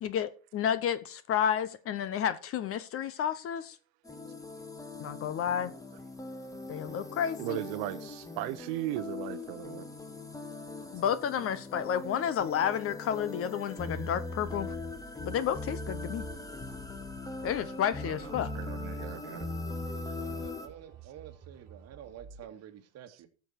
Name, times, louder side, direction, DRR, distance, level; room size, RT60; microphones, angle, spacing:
voice 1, 0.0-3.8 5.0-5.7 6.7-7.6 10.9-14.7 15.2-16.2 17.4-18.5, left 9 dB, 35° left, 0.8 m, -31 dB
sound 1, 4.0-20.7, left 2 dB, 10° left, 1.3 m, -40 dB
sound 2, 6.4-22.4, right 3 dB, 20° right, 4.4 m, -57 dB
voice 2, 7.4-9.9 16.7-16.8 18.0-19.5, right 16 dB, 55° right, 0.9 m, -37 dB
voice 3, 19.8-23.3, right 10 dB, 40° right, 2.0 m, -49 dB
14.0 x 7.1 x 4.5 m
supercardioid pair, 120°, 41 cm